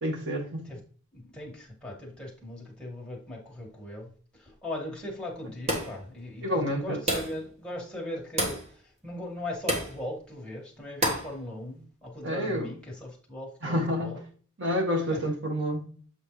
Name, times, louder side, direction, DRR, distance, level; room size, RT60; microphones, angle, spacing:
voice 1, 0.0-0.7 6.4-7.0 12.2-12.7 13.6-14.2 14.6-15.9, equal, 60° right, 2 dB, 1.7 m, -29 dB
voice 2, 1.1-14.2 15.1-15.5, left 1 dB, 5° left, -3 dB, 2.0 m, -39 dB
sound 1, 5.7-6.0 7.1-7.4 8.4-8.7 9.7-10.0 11.0-11.3, equal, 35° right, 1.6 m, -28 dB
8.0 x 4.5 x 3.3 m, 0.43 s
head